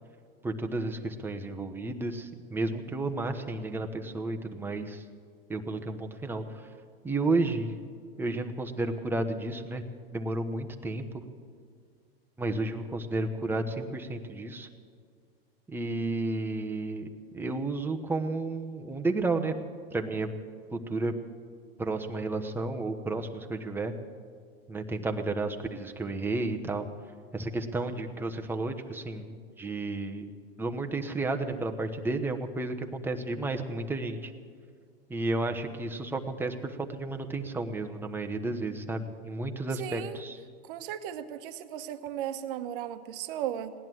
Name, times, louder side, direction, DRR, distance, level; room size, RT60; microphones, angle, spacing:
voice 1, 0.4-5.0 5.5-6.6 7.0-7.7 8.2-9.8 10.1-11.2 12.4-14.7 15.7-17.1 17.3-19.5 19.9-20.3 20.7-21.1 21.8-23.9 24.7-26.9 27.3-30.3 30.6-34.3 35.1-40.4, right 2 dB, 5° right, 4 dB, 1.0 m, -32 dB
voice 2, 39.8-40.2 40.6-43.7, right 10 dB, 60° right, 10 dB, 1.1 m, -36 dB
17.5 x 10.5 x 7.7 m, 2.1 s
hypercardioid pair, 120°, 31 cm